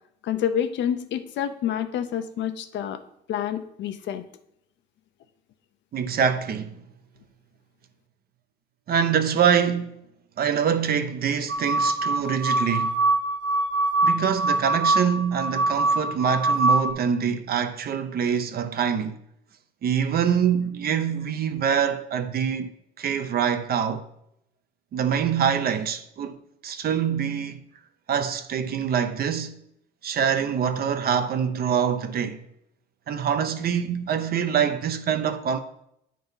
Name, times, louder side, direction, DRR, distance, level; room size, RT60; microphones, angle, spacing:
voice 1, 0.2-3.0 3.3-4.2, left 9 dB, 70° left, 0.7 m, -28 dB
voice 2, 5.9-6.8 8.9-10.0 10.4-12.9 14.0-19.1 19.8-24.0 24.9-27.6 28.1-29.5 30.0-32.4 33.1-35.6, right 7 dB, 50° right, 0.7 m, -25 dB
sound 1, 11.5-16.9, right 2 dB, 70° right, 1.1 m, -23 dB
9.2 x 3.8 x 5.6 m
cardioid pair, 100°, 19 cm